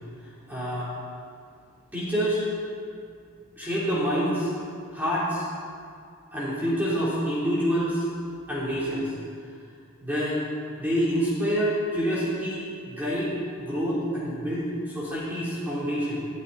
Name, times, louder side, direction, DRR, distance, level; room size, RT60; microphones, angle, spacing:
voice 1, 0.2-0.9 1.9-2.4 3.6-4.5 4.9-5.5 6.3-8.1 8.5-9.1 10.0-10.4 10.8-16.2, equal, 10° right, -9 dB, 3.7 m, -27 dB
22.5 x 12.5 x 4.3 m, 2.3 s
head